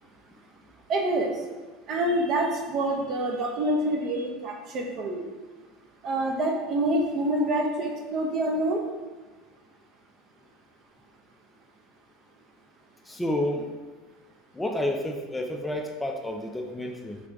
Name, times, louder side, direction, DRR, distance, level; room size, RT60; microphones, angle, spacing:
voice 1, 0.9-1.4 1.9-5.2 6.0-8.8, right 1 dB, 50° right, 2 dB, 0.6 m, -26 dB
voice 2, 13.1-13.7 14.5-17.2, left 1 dB, 10° left, 3 dB, 0.4 m, -30 dB
3.3 x 2.3 x 3.9 m, 1.3 s
hypercardioid pair, 90°, 0 cm